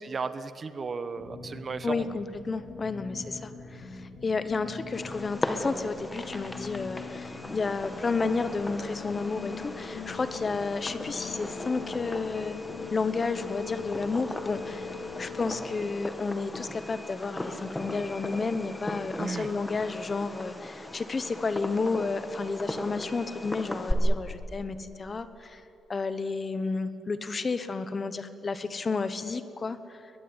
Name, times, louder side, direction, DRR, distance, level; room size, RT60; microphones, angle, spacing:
voice 1, 0.0-2.1 19.2-19.5, right 4 dB, 35° right, 12 dB, 1.0 m, -34 dB
sound 1, 1.1-15.6, left 5 dB, 55° left, 3.8 m, -41 dB
voice 2, 1.8-12.5 12.9-25.6 25.9-30.1, left 4 dB, 30° left, 12 dB, 1.2 m, -31 dB
Fireworks, 4.9-23.9, left 1 dB, 10° left, 1.9 m, -38 dB
21.5 x 21.0 x 9.9 m, 2.8 s
cardioid pair, 145°, 0 cm